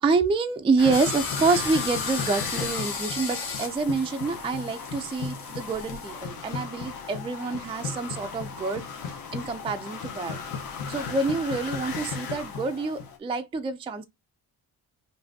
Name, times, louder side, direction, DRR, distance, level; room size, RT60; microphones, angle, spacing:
voice 1, 0.0-8.8 9.3-10.4 10.9-14.0, right 4 dB, 15° right, 0.3 m, -27 dB
sound 1, 0.8-13.2, left 5 dB, 75° left, 1.0 m, -36 dB
sound 2, 0.9-6.3, left 5 dB, 40° left, 1.1 m, -35 dB
5.6 x 2.6 x 2.6 m
wide cardioid pair, 165°, 35 cm